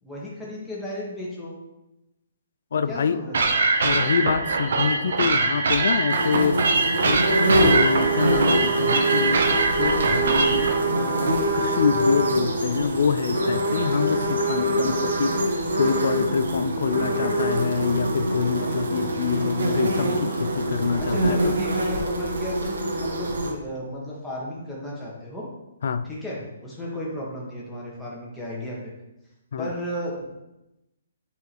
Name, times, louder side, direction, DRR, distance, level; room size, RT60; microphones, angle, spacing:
voice 1, 0.0-1.6 2.9-3.6 21.0-25.5 26.0-28.8 29.6-30.3, left 1 dB, 5° left, -7 dB, 1.9 m, -34 dB
voice 2, 2.7-3.2 3.8-6.6 7.0-7.3 7.6-21.6 25.8-26.1 29.5-29.7, left 6 dB, 60° left, 13 dB, 0.5 m, -26 dB
sound 1, 3.3-10.7, right 3 dB, 65° right, 1.2 m, -23 dB
sound 2, 6.1-23.5, right 1 dB, 85° right, 1.8 m, -24 dB
7.5 x 5.1 x 4.7 m, 0.94 s
hypercardioid pair, 165°, 0 cm